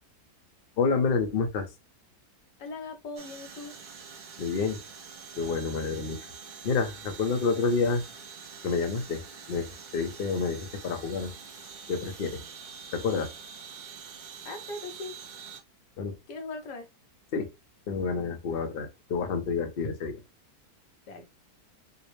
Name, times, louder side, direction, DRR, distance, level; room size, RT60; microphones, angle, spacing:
voice 1, 0.8-1.7 4.4-4.8 5.4-6.2 6.6-8.0 8.6-9.2 9.5-11.3 11.9-12.4 12.9-13.3 16.0-16.2 17.3-17.5 17.9-20.2, left 4 dB, 50° left, 0.7 m, -28 dB
voice 2, 2.6-3.7 14.4-15.2 16.3-16.9 21.1-21.2, left 3 dB, 75° left, 1.5 m, -39 dB
sound 1, 3.2-15.6, right 6 dB, 70° right, 0.4 m, -46 dB
4.8 x 2.1 x 3.1 m
omnidirectional pair, 1.8 m